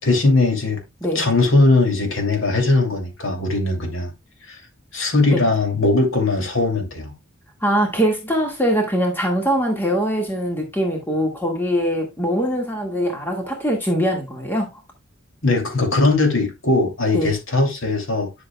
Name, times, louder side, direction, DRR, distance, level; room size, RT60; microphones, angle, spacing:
voice 1, 0.0-0.8 1.1-4.1 4.5-4.6 4.9-7.1 15.4-18.3, left 2 dB, 65° left, 2.6 m, -19 dB
voice 2, 7.6-14.7 17.1-17.3, equal, 10° left, 1.7 m, -22 dB
10.5 x 6.4 x 2.2 m
head